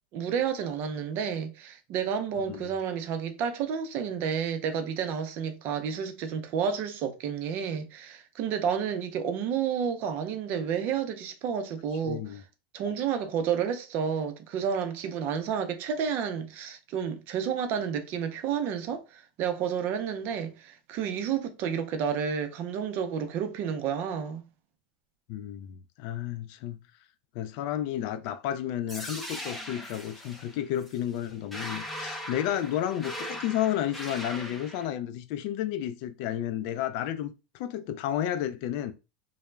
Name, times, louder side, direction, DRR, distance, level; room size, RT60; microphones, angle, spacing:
voice 1, 0.1-12.4 12.7-24.5, right 7 dB, 45° right, 0.5 m, -30 dB
voice 2, 12.0-12.4 25.3-26.8 27.3-38.9, left 11 dB, 55° left, 0.3 m, -32 dB
sound 1, 28.9-34.9, equal, ahead, 0.5 m, -39 dB
2.2 x 2.0 x 3.1 m
supercardioid pair, 125°, 5 cm